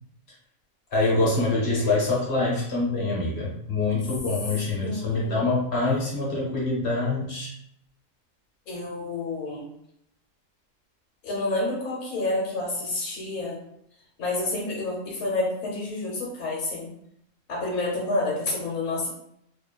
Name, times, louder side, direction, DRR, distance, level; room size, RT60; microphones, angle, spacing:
voice 1, 0.9-7.5, left 2 dB, 55° left, -5 dB, 1.0 m, -25 dB
voice 2, 4.8-5.4 8.7-9.7 11.2-13.6 14.2-16.9 17.5-19.1, left 2 dB, 70° left, -4 dB, 1.1 m, -29 dB
2.8 x 2.3 x 2.2 m, 0.73 s
omnidirectional pair, 1.5 m